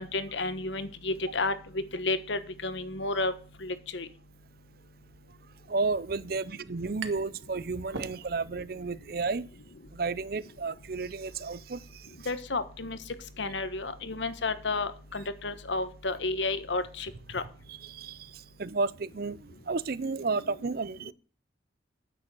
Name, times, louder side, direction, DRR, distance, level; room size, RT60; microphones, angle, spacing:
voice 1, 0.0-1.5 1.9-3.3 3.6-4.1 12.3-13.0 13.4-17.4, left 3 dB, 75° left, 1.2 m, -31 dB
voice 2, 5.7-9.5 9.9-12.0 17.7-19.4 19.7-21.1, right 4 dB, 50° right, 0.6 m, -32 dB
sound 1, 7.0-7.4 7.7-8.7, right 4 dB, 85° right, 1.4 m, -42 dB
9.3 x 9.2 x 6.2 m
head